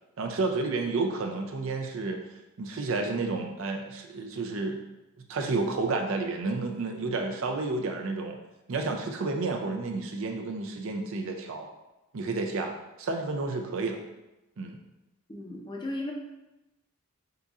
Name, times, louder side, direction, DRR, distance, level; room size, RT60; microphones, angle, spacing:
voice 1, 0.2-2.2 2.6-4.8 5.3-8.4 8.7-11.7 12.1-14.0 14.6-14.8, right 3 dB, 60° right, 3 dB, 0.4 m, -31 dB
voice 2, 15.3-16.1, left 1 dB, 20° left, -1 dB, 0.5 m, -35 dB
4.0 x 3.9 x 2.4 m, 0.99 s
head